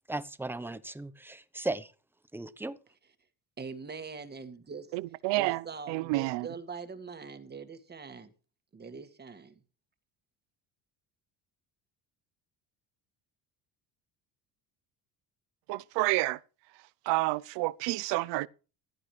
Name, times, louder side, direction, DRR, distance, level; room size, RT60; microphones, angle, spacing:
voice 1, 0.1-1.9 2.3-2.8, right 2 dB, 5° right, 0.9 m, -36 dB
voice 2, 3.6-5.0 5.4-8.3 8.7-9.5, right 5 dB, 25° right, 1.9 m, -43 dB
voice 3, 4.9-6.5 15.7-16.4 17.1-18.5, right 20 dB, 85° right, 0.7 m, -29 dB
16.5 x 12.0 x 3.3 m
cardioid pair, 140°, 42 cm